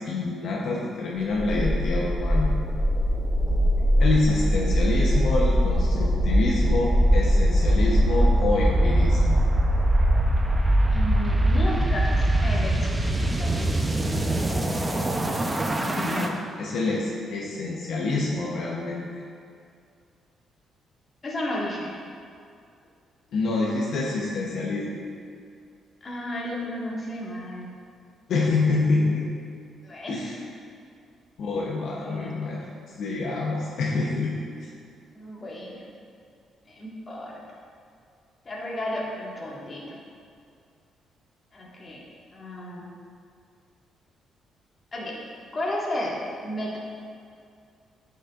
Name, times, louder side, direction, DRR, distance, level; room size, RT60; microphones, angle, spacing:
voice 1, 0.0-2.5 4.0-9.4 16.0-19.0 23.3-24.9 28.3-29.3 30.1-30.4 31.4-32.7 33.0-34.7, left 3 dB, 70° left, -3 dB, 0.8 m, -27 dB
sound 1, 1.3-16.3, equal, 15° right, 0.7 m, -22 dB
voice 2, 10.9-13.9 21.2-21.9 26.0-27.7 29.8-30.3 32.0-32.4 35.1-35.8 36.6-37.4 38.4-40.0 41.5-42.0 42.3-42.8 44.9-45.2 45.5-46.8, left 1 dB, 35° left, -4 dB, 1.7 m, -33 dB
10.0 x 5.6 x 2.5 m, 2.3 s
cardioid pair, 90°, 0 cm